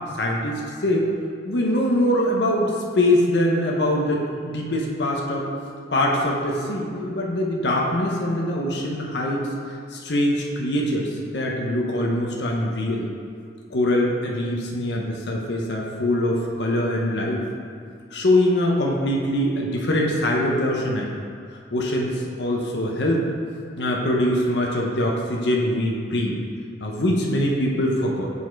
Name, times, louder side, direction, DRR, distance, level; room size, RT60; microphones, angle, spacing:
voice 1, 0.1-1.1 1.4-5.5 5.9-9.5 9.9-13.1 13.7-17.4 18.1-21.1 21.5-23.3 23.8-26.4 26.8-28.3, left 1 dB, 70° left, -2 dB, 0.8 m, -23 dB
7.3 x 4.2 x 4.6 m, 2.2 s
head